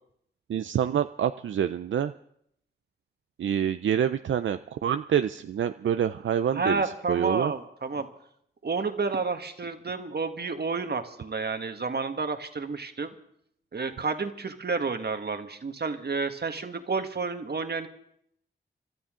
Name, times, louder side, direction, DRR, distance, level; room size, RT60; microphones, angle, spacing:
voice 1, 0.5-2.1 3.4-7.5, right 9 dB, 80° right, 10 dB, 0.5 m, -27 dB
voice 2, 6.5-8.1 8.6-13.1 13.7-17.9, right 4 dB, 55° right, 7 dB, 1.6 m, -30 dB
26.5 x 12.5 x 3.7 m, 0.70 s
cardioid pair, 50°, 20 cm